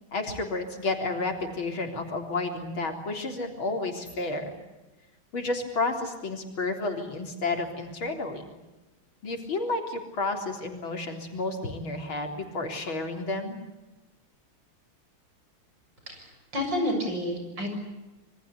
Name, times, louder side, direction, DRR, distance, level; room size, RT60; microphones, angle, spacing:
voice 1, 0.1-4.5 5.3-8.4 9.2-13.6, left 3 dB, 75° left, 3 dB, 4.5 m, -31 dB
voice 2, 16.1-17.8, left 1 dB, 60° right, 4 dB, 7.7 m, -30 dB
27.0 x 24.5 x 8.4 m, 1.1 s
omnidirectional pair, 2.2 m